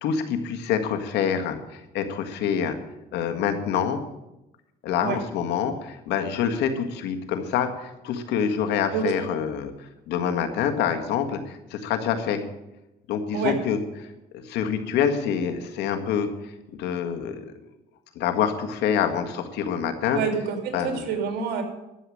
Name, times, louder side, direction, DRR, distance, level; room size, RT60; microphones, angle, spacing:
voice 1, 0.0-2.8 3.1-4.0 4.8-9.7 10.1-12.4 13.1-13.8 14.3-16.3 16.8-17.5 18.2-20.2 20.7-21.0, left 8 dB, 85° left, 6 dB, 1.7 m, -26 dB
voice 2, 20.1-21.6, right 6 dB, 75° right, 5 dB, 3.1 m, -27 dB
12.0 x 7.7 x 9.9 m, 0.94 s
cardioid pair, 110°, 17 cm